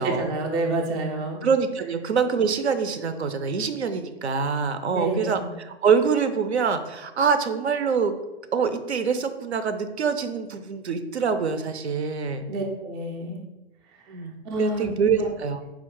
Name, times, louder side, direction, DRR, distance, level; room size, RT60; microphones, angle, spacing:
voice 1, 0.0-1.4 4.9-5.5 12.5-13.4 14.4-15.3, right 2 dB, 15° right, 0 dB, 0.3 m, -28 dB
voice 2, 1.4-5.4 5.6-8.1 8.5-12.5 14.1-15.6, right 6 dB, 85° right, 9 dB, 0.5 m, -25 dB
4.5 x 2.3 x 3.7 m, 1.0 s
figure-of-eight pair, 110°, 32 cm